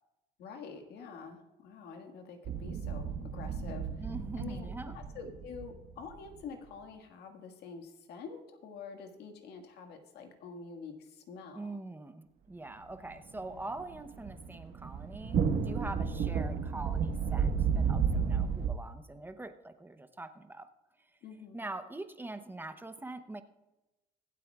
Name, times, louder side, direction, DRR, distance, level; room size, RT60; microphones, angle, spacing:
voice 1, 0.4-4.1 4.4-11.8 18.1-18.3 21.2-21.7, left 5 dB, 75° left, 4 dB, 1.8 m, -47 dB
sound 1, 2.5-6.4 13.3-18.7, right 6 dB, 65° right, 1.4 m, -32 dB
voice 2, 4.0-5.0 11.5-20.7 21.5-23.4, right 2 dB, 10° right, 9 dB, 0.8 m, -43 dB
24.5 x 8.5 x 2.4 m, 1.0 s
cardioid pair, 110°, 17 cm